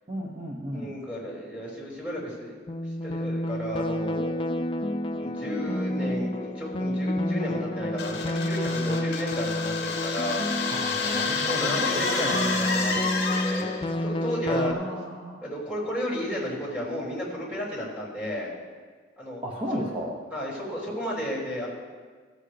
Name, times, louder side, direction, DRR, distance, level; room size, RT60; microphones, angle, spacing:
voice 1, 0.1-0.9 10.7-12.6 14.5-15.4 19.4-20.1, equal, 30° right, -3 dB, 1.0 m, -34 dB
voice 2, 0.7-2.6 3.0-4.4 5.2-10.4 11.0-15.0 15.4-18.5 19.2-19.4 19.7-19.9 20.3-21.7, equal, 5° right, -8 dB, 3.4 m, -33 dB
sound 1, 2.7-14.7, left 1 dB, 25° left, 0.4 m, -30 dB
sound 2, 8.0-13.9, left 4 dB, 60° left, 1.2 m, -29 dB
15.5 x 7.9 x 3.4 m, 1.5 s
head